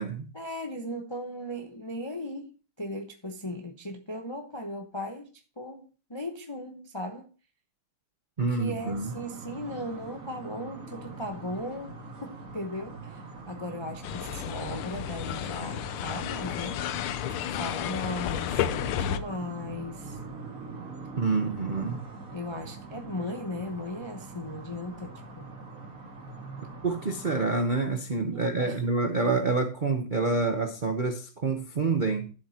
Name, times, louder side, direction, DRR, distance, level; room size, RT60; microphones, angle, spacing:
voice 1, 0.3-5.3 5.6-7.3 8.5-16.8 17.5-20.2 22.3-25.5 28.3-28.8, left 1 dB, 45° left, 0.3 m, -37 dB
voice 2, 8.4-9.1 21.2-22.0 26.6-32.3, right 3 dB, 80° right, 0.4 m, -27 dB
sound 1, 8.8-27.6, right 3 dB, 40° right, 2.2 m, -43 dB
sound 2, 14.0-19.2, left 10 dB, 80° left, 1.5 m, -32 dB
13.0 x 7.5 x 2.8 m
omnidirectional pair, 2.3 m